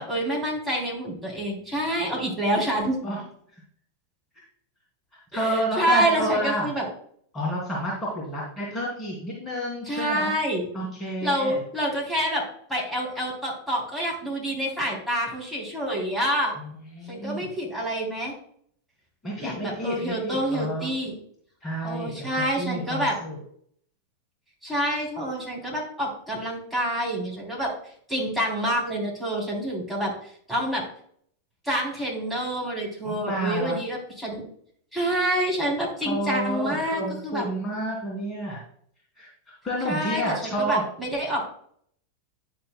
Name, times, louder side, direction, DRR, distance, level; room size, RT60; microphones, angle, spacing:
voice 1, 0.0-3.0 5.3-6.8 9.9-10.7 11.2-12.4 12.7-16.5 17.1-18.3 19.4-21.2 21.8-23.2 24.6-27.7 28.1-30.8 31.6-34.4 34.9-37.5 39.8-41.4, right 1 dB, 5° left, -4 dB, 3.5 m, -27 dB
voice 2, 5.3-6.7 7.3-10.3 10.7-11.6 16.6-16.7 16.9-17.5 19.2-20.9 21.6-22.3 22.6-23.4 33.0-33.8 36.0-38.6 39.2-39.3 39.6-40.8, equal, 20° left, -5 dB, 2.8 m, -29 dB
10.5 x 6.9 x 2.3 m, 0.62 s
figure-of-eight pair, 90°, 0 cm